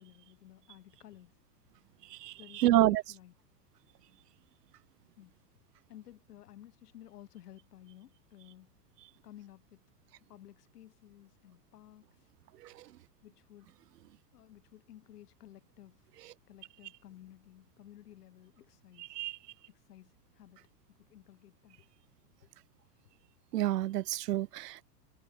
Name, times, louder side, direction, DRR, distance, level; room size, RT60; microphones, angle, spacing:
voice 1, 0.0-1.3 2.4-3.3 5.2-5.4 5.9-8.8 9.2-9.8 10.3-12.3 13.2-13.7 14.3-16.1 16.5-19.2 19.7-21.9 22.4-22.5 22.8-23.2, left 13 dB, 75° left, 5.6 m, -55 dB
voice 2, 2.6-3.0 19.2-19.3 23.5-24.8, right 14 dB, 90° right, 0.7 m, -27 dB
hypercardioid pair, 120°, 47 cm